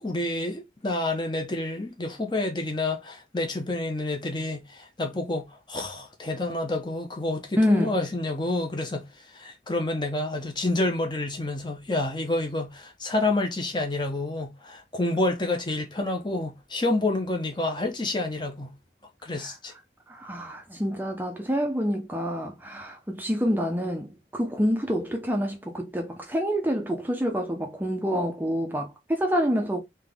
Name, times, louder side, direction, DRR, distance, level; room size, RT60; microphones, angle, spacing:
voice 1, 0.0-18.7 19.2-19.7, left 2 dB, 25° left, 0.9 m, -28 dB
voice 2, 7.6-8.0 19.3-19.5 20.1-29.8, equal, 10° right, 0.6 m, -27 dB
3.6 x 2.9 x 3.5 m
head